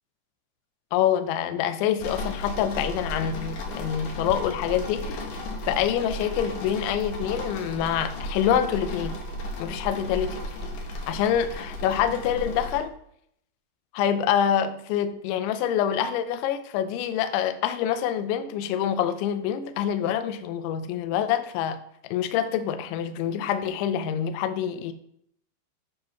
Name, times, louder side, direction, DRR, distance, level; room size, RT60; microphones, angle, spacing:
voice 1, 0.9-5.3 5.6-9.2 9.6-10.4 11.1-12.9 13.9-24.9, left 9 dB, 80° left, 10 dB, 3.0 m, -26 dB
sound 1, 2.0-12.8, left 1 dB, 65° left, 2.0 m, -34 dB
10.0 x 4.5 x 5.7 m, 0.69 s
omnidirectional pair, 5.4 m